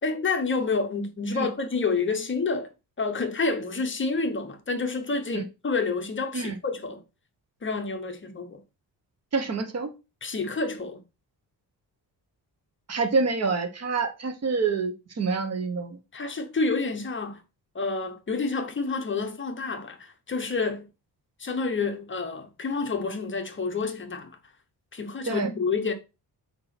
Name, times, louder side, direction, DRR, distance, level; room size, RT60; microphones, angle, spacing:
voice 1, 0.0-2.7 3.0-7.0 7.6-8.6 10.2-11.0 16.1-17.4 17.7-20.9 21.4-24.4 24.9-25.9, left 4 dB, 30° left, 0.9 m, -29 dB
voice 2, 9.3-9.9 12.9-16.0 25.3-25.5, right 4 dB, 40° right, 1.1 m, -27 dB
8.1 x 2.8 x 5.9 m
wide cardioid pair, 160°, 38 cm